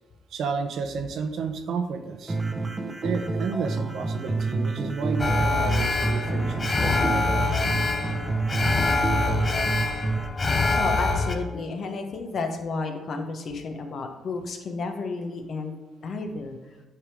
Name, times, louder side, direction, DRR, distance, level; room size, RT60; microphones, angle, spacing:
voice 1, 0.3-2.4 3.0-7.3, right 5 dB, 70° right, 7 dB, 0.7 m, -31 dB
sound 1, 2.3-10.3, right 3 dB, 20° right, 0.7 m, -28 dB
Alarm, 5.2-11.3, left 3 dB, 30° left, 0.7 m, -25 dB
voice 2, 10.7-15.7 16.0-16.8, left 3 dB, 55° left, 5 dB, 1.0 m, -32 dB
8.4 x 3.6 x 4.8 m, 1.2 s
cardioid pair, 90°, 0 cm